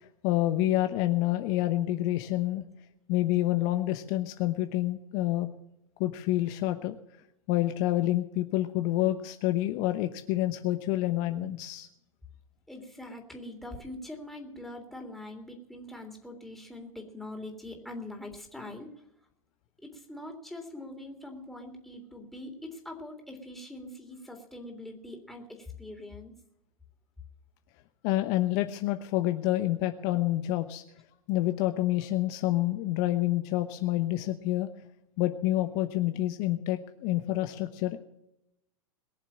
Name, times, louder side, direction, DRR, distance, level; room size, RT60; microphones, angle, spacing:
voice 1, 0.0-2.6 3.1-5.5 6.0-7.0 7.5-11.9 28.0-30.8 31.3-34.7 35.2-38.0, left 15 dB, 45° left, 8 dB, 1.0 m, -28 dB
voice 2, 12.7-18.9 19.8-26.3, left 1 dB, ahead, 2 dB, 3.3 m, -43 dB
22.0 x 7.3 x 7.5 m, 0.83 s
hypercardioid pair, 100°, 18 cm